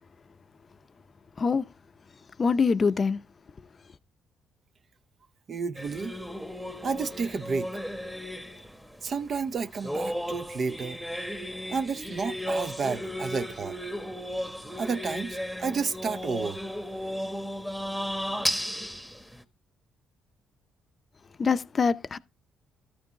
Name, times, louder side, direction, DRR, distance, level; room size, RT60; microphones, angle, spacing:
voice 1, 1.4-1.7 2.4-3.2 21.4-22.2, left 5 dB, 40° left, 0.6 m, -24 dB
voice 2, 5.5-6.2 6.8-7.8 9.0-11.0 11.7-13.8 14.8-16.6, right 5 dB, 50° right, 0.7 m, -31 dB
sound 1, 5.7-19.4, equal, 5° right, 1.2 m, -35 dB
13.0 x 5.2 x 3.9 m
supercardioid pair, 75°, 0 cm